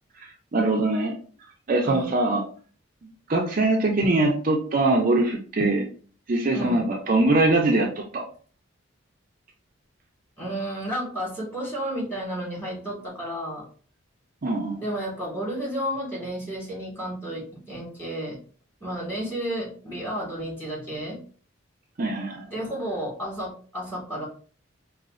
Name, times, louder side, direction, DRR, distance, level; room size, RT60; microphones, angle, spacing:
voice 1, 0.2-1.1 1.7-2.4 3.0-5.8 6.3-8.2 14.4-14.7 22.0-22.4, right 2 dB, 40° right, 1 dB, 0.5 m, -22 dB
voice 2, 1.8-2.2 6.5-6.8 10.4-13.6 14.8-18.4 18.8-21.2 22.5-24.3, right 1 dB, 10° left, -5 dB, 1.6 m, -32 dB
4.9 x 2.4 x 2.4 m, 0.41 s
head